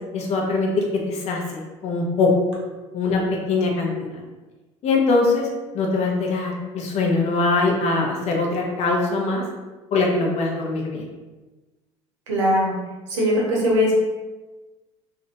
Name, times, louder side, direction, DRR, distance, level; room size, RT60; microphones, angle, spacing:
voice 1, 0.1-2.3 2.9-4.1 4.8-5.5 5.7-9.4 9.9-11.0, left 3 dB, 45° left, 0 dB, 0.6 m, -22 dB
voice 2, 12.3-12.7 13.1-13.9, equal, 80° right, -3 dB, 0.8 m, -20 dB
2.4 x 2.1 x 2.8 m, 1.2 s
hypercardioid pair, 70°, 16 cm